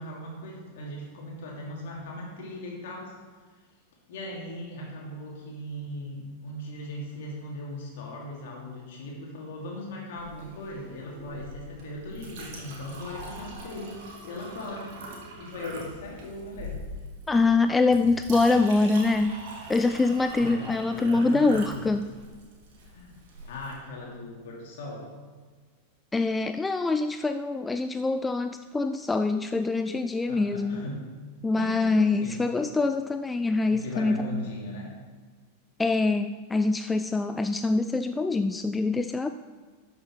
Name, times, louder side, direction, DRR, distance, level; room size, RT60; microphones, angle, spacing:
voice 1, 0.0-3.1 4.1-14.9 15.4-16.8 20.4-21.8 22.8-23.2 23.5-25.1 30.3-31.1 31.5-31.8 32.2-32.5 33.7-34.9, left 1 dB, 55° left, -2 dB, 2.8 m, -38 dB
Chink clink, 10.2-23.7, right 1 dB, 50° right, 2.2 m, -43 dB
voice 2, 17.3-19.3 19.7-22.1 26.1-30.8 31.4-34.4 35.8-39.3, left 3 dB, 10° left, 9 dB, 0.3 m, -24 dB
12.0 x 6.7 x 4.5 m, 1.5 s
figure-of-eight pair, 90°, 0 cm